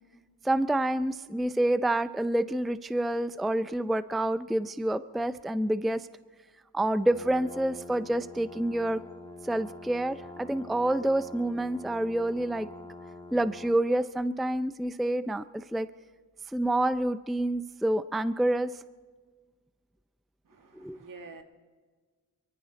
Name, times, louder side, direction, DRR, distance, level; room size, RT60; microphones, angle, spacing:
voice 1, 0.4-6.1 6.7-9.0 9.4-12.7 13.3-15.9 16.5-18.7 20.8-21.0, right 1 dB, ahead, 0.5 m, -28 dB
sound 1, 7.1-13.8, left 2 dB, 15° left, 2.6 m, -46 dB
voice 2, 20.4-21.4, right 3 dB, 65° right, 2.0 m, -48 dB
23.0 x 14.5 x 4.0 m
cardioid pair, 65°, 35 cm